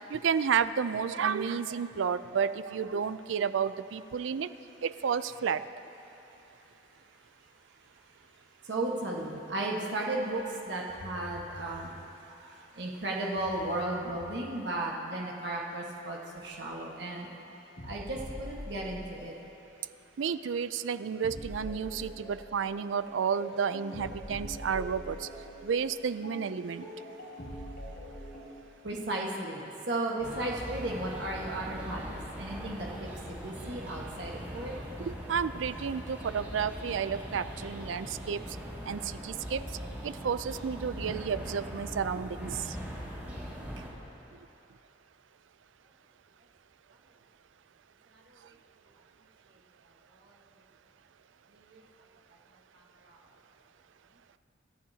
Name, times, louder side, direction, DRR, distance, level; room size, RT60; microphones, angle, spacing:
voice 1, 0.1-4.5 4.8-5.6 20.2-25.2 25.6-26.8 35.3-38.4 38.9-39.6 40.0-42.5, right 6 dB, 80° right, 13 dB, 0.4 m, -31 dB
voice 2, 8.6-11.9 12.3-17.3 17.8-19.3 28.8-34.7 50.2-50.3 51.7-51.8 53.0-53.2, right 2 dB, 60° right, -2 dB, 1.5 m, -35 dB
sound 1, 17.8-19.5 21.2-28.5, equal, 75° left, 3.1 m, -44 dB
sound 2, 30.2-43.9, equal, 10° right, 2.2 m, -41 dB
26.5 x 11.5 x 2.8 m, 2.9 s
head